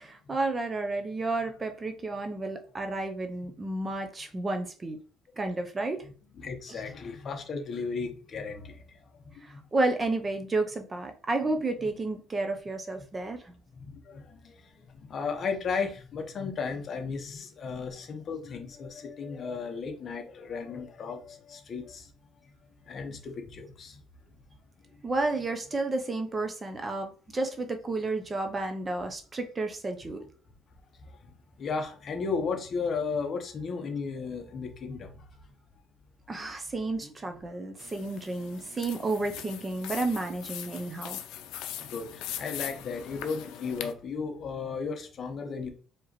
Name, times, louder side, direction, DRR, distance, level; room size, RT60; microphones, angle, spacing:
voice 1, 0.0-5.0 5.4-6.0 6.7-6.8 9.4-13.5 25.0-30.2 36.3-41.2, right 2 dB, 20° right, 0.5 m, -31 dB
voice 2, 6.4-8.8 9.5-9.6 13.7-14.5 14.9-22.1 22.9-24.0 31.6-35.1 41.8-45.7, left 5 dB, 40° left, 0.9 m, -35 dB
sound 1, 37.8-43.9, left 10 dB, 85° left, 0.5 m, -41 dB
4.7 x 2.9 x 3.0 m
cardioid pair, 140°, 0 cm